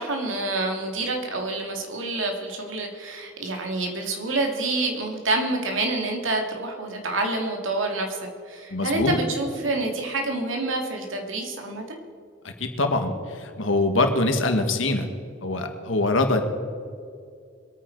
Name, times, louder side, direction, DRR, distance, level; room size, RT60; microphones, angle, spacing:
voice 1, 0.0-8.2 8.5-12.0, right 2 dB, 90° right, 2 dB, 2.3 m, -27 dB
voice 2, 8.7-9.2 12.4-15.1 15.4-16.4, left 2 dB, 85° left, 6 dB, 1.5 m, -23 dB
24.0 x 9.3 x 4.6 m, 2.4 s
head